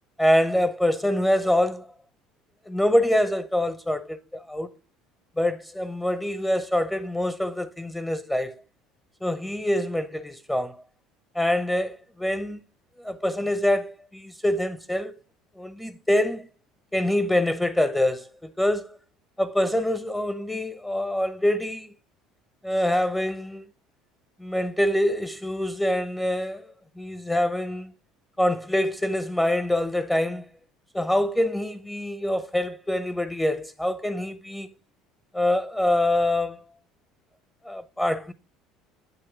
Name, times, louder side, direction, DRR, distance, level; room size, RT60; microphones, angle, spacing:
voice 1, 0.2-1.9 2.7-4.7 5.4-8.6 9.2-10.8 11.3-12.6 13.0-15.1 15.6-16.5 16.9-19.0 19.4-21.9 22.6-23.7 24.4-26.7 27.0-27.9 28.4-30.5 30.9-34.7 35.3-36.6 37.6-38.3, left 1 dB, 5° left, 0.9 m, -25 dB
8.9 x 3.0 x 6.1 m
hypercardioid pair, 65°, 0 cm